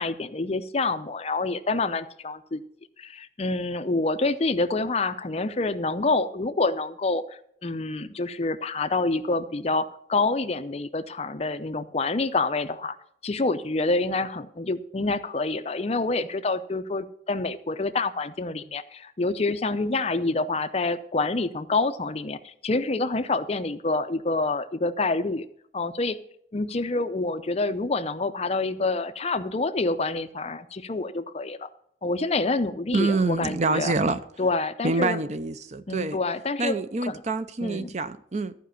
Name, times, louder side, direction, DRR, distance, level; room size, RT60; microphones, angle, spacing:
voice 1, 0.0-2.6 3.0-7.2 7.6-13.0 13.2-25.5 25.7-26.2 26.5-31.7 32.0-33.9 34.4-35.2 35.9-36.8 37.1-37.2 37.6-37.9, left 3 dB, 35° left, 0.6 m, -27 dB
voice 2, 32.9-34.2 34.8-36.2 36.6-38.5, right 3 dB, 40° right, 0.5 m, -26 dB
13.5 x 5.1 x 8.2 m
head